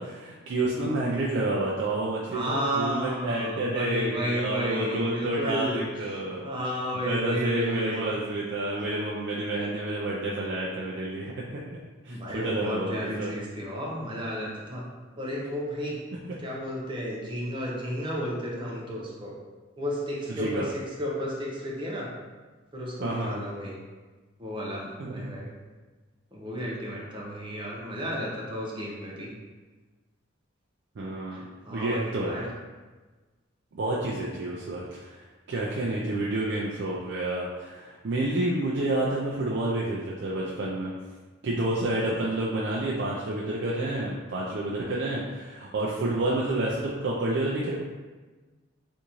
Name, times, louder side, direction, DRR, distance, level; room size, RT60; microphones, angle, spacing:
voice 1, 0.0-6.5 7.0-11.4 12.0-13.3 16.1-16.2 20.3-20.7 23.0-23.5 25.0-25.3 31.0-32.5 33.7-40.9 41.4-47.7, right 1 dB, 60° right, -5 dB, 0.4 m, -29 dB
voice 2, 2.3-5.9 6.4-8.1 12.1-14.8 15.2-16.0 16.4-19.3 19.8-22.1 22.7-23.7 24.4-25.5 26.3-29.3 31.3-31.4 31.7-32.4, equal, 25° right, -3 dB, 0.6 m, -32 dB
3.6 x 2.6 x 2.9 m, 1.3 s
head